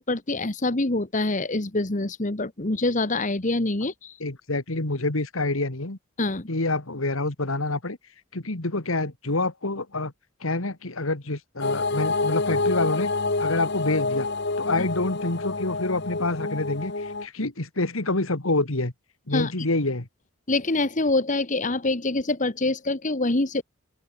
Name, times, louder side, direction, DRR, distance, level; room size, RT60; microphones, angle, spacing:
voice 1, 0.0-4.2 6.2-6.5 14.8-14.9 19.3-19.5 20.5-23.6, left 2 dB, 35° left, 1.5 m, -25 dB
voice 2, 4.2-6.0 6.5-8.0 8.3-10.1 10.4-13.1 13.4-14.3 14.6-18.9 19.3-20.1, left 2 dB, 80° left, 2.3 m, -27 dB
sound 1, 11.6-17.3, left 3 dB, 55° left, 1.9 m, -27 dB
open air
head